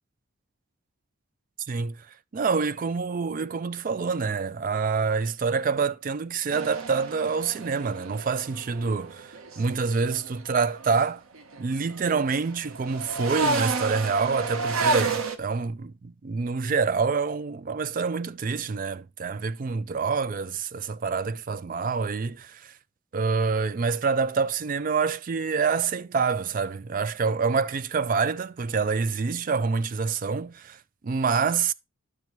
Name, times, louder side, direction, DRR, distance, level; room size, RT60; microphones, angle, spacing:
voice 1, 1.7-11.2 11.6-22.8 23.1-31.7, right 5 dB, 40° right, 0.3 m, -27 dB
sound 1, 6.5-11.0 11.3-15.4, right 3 dB, 85° right, 1.0 m, -31 dB
10.5 x 6.1 x 3.0 m
head